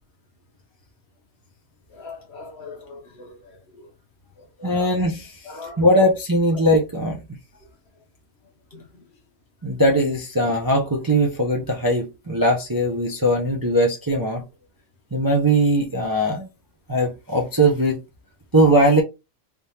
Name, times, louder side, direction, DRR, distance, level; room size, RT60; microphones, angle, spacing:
voice 1, 1.9-3.5 4.6-4.9 5.5-5.8 8.7-8.8, left 3 dB, 55° left, 1.0 m, -40 dB
voice 2, 4.6-5.3 5.8-7.2 9.6-14.5 15.1-16.5 16.9-18.0 18.5-19.0, right 1 dB, 25° right, 0.5 m, -20 dB
3.4 x 3.4 x 2.8 m
omnidirectional pair, 1.5 m